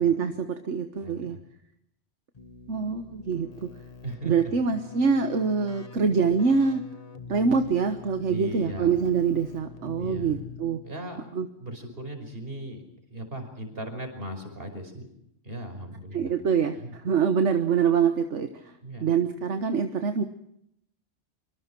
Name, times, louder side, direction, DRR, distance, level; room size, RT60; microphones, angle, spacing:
voice 1, 0.0-1.4 2.7-3.7 4.2-6.8 7.3-10.8 11.3-11.5 16.1-18.7 19.0-20.2, right 6 dB, 75° right, 8 dB, 1.6 m, -25 dB
voice 2, 1.0-1.4 4.0-4.3 8.3-9.0 10.0-10.4 10.8-11.3 11.6-12.8 13.1-15.1 15.4-16.3 16.8-16.9 18.8-19.1, right 1 dB, 50° right, 5 dB, 5.7 m, -37 dB
Keyboard (musical), 2.3-11.1, left 4 dB, 30° left, 1.5 m, -45 dB
25.5 x 24.5 x 6.1 m, 0.75 s
omnidirectional pair, 1.2 m